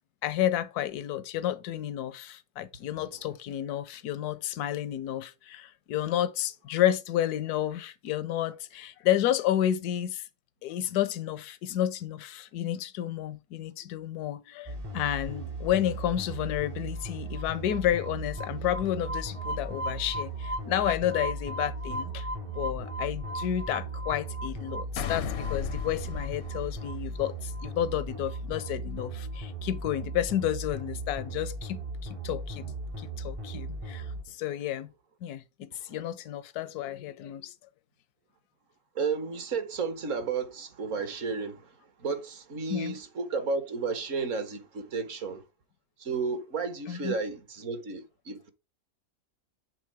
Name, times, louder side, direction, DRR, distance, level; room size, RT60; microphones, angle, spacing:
voice 1, 0.2-10.3 10.6-22.3 22.5-34.9 35.2-37.5 42.7-42.9 46.9-47.1, left 11 dB, 85° left, 1.2 m, -31 dB
voice 2, 3.0-3.3 35.7-36.0 38.9-45.5 46.0-48.5, right 4 dB, 55° right, 1.4 m, -33 dB
sound 1, 14.7-34.2, right 2 dB, 35° right, 0.5 m, -36 dB
sound 2, 25.0-27.5, left 10 dB, 60° left, 0.6 m, -36 dB
7.6 x 3.6 x 4.7 m
omnidirectional pair, 1.6 m